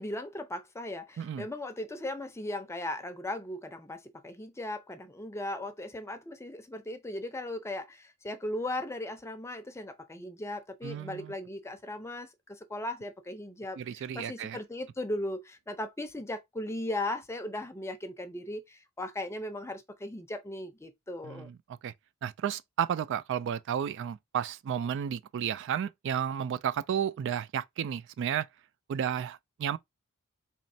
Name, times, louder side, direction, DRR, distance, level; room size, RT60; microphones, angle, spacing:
voice 1, 0.0-21.5, left 1 dB, 15° left, 0.5 m, -37 dB
voice 2, 10.8-11.3 13.8-14.6 21.2-21.6 21.8-21.9 22.2-28.5 28.9-29.8, right 9 dB, 55° right, 0.3 m, -32 dB
4.2 x 3.0 x 2.7 m
head